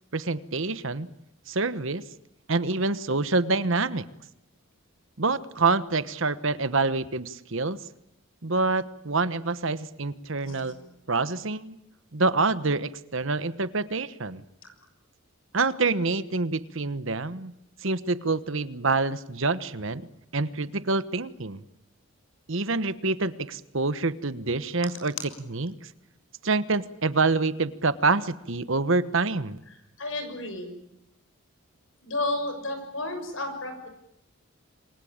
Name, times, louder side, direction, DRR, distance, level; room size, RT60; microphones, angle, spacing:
voice 1, 0.1-1.1 1.5-2.0 2.5-4.0 5.2-7.8 8.4-10.7 11.1-11.8 12.1-14.4 15.5-17.5 17.8-20.1 20.3-21.6 22.5-25.7 26.4-29.6, right 3 dB, 60° right, 14 dB, 1.2 m, -26 dB
voice 2, 10.4-10.7 30.0-30.7 32.0-33.9, left 2 dB, 65° left, 7 dB, 6.6 m, -32 dB
27.5 x 22.5 x 8.8 m, 0.84 s
head